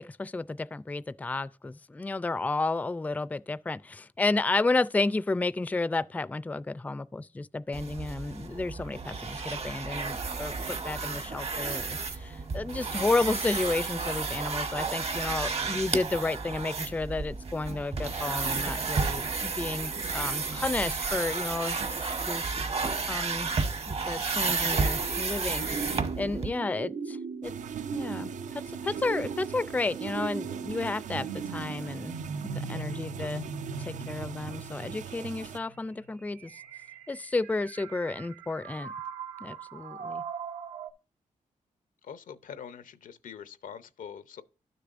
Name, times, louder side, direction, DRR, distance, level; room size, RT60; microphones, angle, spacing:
voice 1, 0.0-22.6 23.1-27.5 27.9-32.2 32.7-33.5 33.8-36.6 37.1-38.9 39.4-40.2, left 3 dB, 10° left, 0.4 m, -32 dB
sound 1, 7.7-26.5, right 4 dB, 50° right, 1.0 m, -32 dB
sound 2, 24.7-40.9, right 5 dB, 90° right, 0.8 m, -39 dB
sound 3, 27.4-35.6, right 9 dB, 70° right, 0.4 m, -42 dB
voice 2, 42.0-44.4, left 8 dB, 85° left, 0.7 m, -44 dB
12.0 x 6.8 x 2.5 m
cardioid pair, 80°, 13 cm